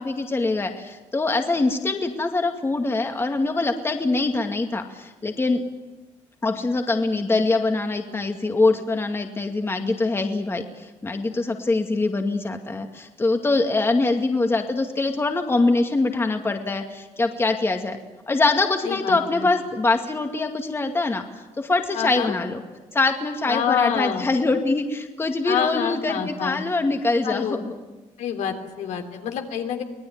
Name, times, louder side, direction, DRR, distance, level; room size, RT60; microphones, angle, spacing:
voice 1, 0.0-5.6 6.4-18.0 18.3-21.2 21.6-22.6 22.9-27.6, left 3 dB, 20° left, 5 dB, 2.2 m, -23 dB
voice 2, 18.8-19.5 21.9-22.3 23.5-24.3 25.5-26.6 27.2-27.6 28.2-29.8, left 8 dB, 75° left, 5 dB, 3.2 m, -27 dB
25.5 x 18.5 x 9.5 m, 1.1 s
cardioid pair, 115°, 12 cm